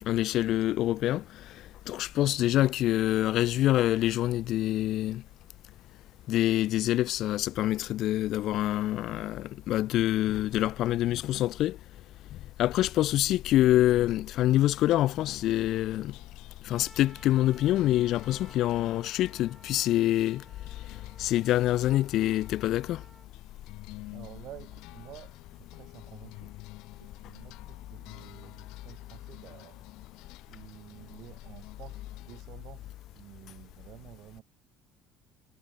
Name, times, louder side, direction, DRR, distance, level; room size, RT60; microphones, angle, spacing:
voice 1, 0.0-1.6 1.9-5.2 6.3-11.8 12.6-16.1 16.6-20.4 21.2-23.0, left 14 dB, 55° left, 0.5 m, -26 dB
sound 1, 13.9-32.4, left 22 dB, 75° left, 2.1 m, -51 dB
Trumpet, 16.7-23.3, right 3 dB, 15° right, 3.2 m, -56 dB
voice 2, 24.1-26.5 27.0-29.8 30.5-34.4, right 14 dB, 60° right, 6.4 m, -51 dB
cardioid pair, 130°, 0 cm